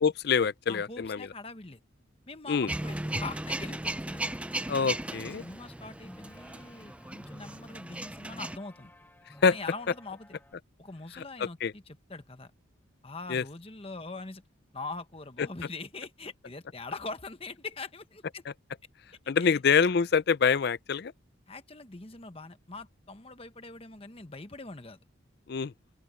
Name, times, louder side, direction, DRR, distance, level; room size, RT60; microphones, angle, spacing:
voice 1, 0.0-1.3 2.5-2.7 4.7-5.4 9.4-9.6 11.2-11.7 13.3-13.4 19.3-21.1 25.5-25.7, left 6 dB, 55° left, 0.5 m, -26 dB
voice 2, 0.7-1.8 2.3-4.3 5.4-8.9 9.5-10.3 10.8-12.5 13.0-14.4 14.7-18.4 19.4-19.6 21.5-25.0, left 3 dB, 30° left, 1.2 m, -42 dB
sound 1, 2.5-10.5, left 1 dB, 10° left, 1.5 m, -54 dB
Male speech man speaking / Vehicle / Engine starting, 2.7-8.6, right 1 dB, 5° right, 0.4 m, -36 dB
open air
head